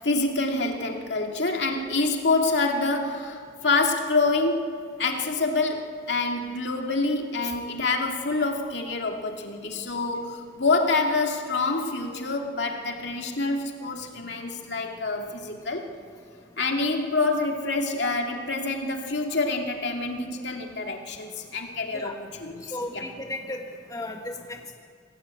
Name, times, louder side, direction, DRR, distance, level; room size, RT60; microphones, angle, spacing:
voice 1, 0.0-16.0 16.6-23.0, left 3 dB, 65° left, 2 dB, 2.6 m, -27 dB
voice 2, 22.7-23.6 23.9-24.7, left 1 dB, 20° left, 2 dB, 1.7 m, -35 dB
27.0 x 18.0 x 8.5 m, 2.1 s
head